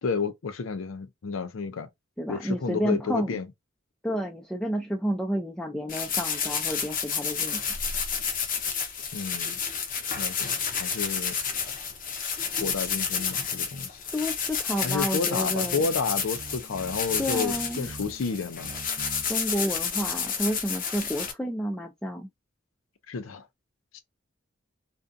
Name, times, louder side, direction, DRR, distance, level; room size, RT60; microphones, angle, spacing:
voice 1, 0.0-1.9 2.3-3.5 9.1-9.6 10.2-11.3 12.6-14.0 14.8-18.7 23.1-23.4 23.9-24.0, left 5 dB, 90° left, 0.5 m, -31 dB
voice 2, 2.2-3.4 4.0-7.8 14.1-15.8 17.2-17.9 19.3-22.3, equal, 5° left, 0.3 m, -30 dB
sound 1, 5.9-21.3, left 6 dB, 45° left, 0.6 m, -30 dB
sound 2, 15.6-19.6, right 3 dB, 65° right, 0.6 m, -45 dB
2.5 x 2.2 x 2.5 m
head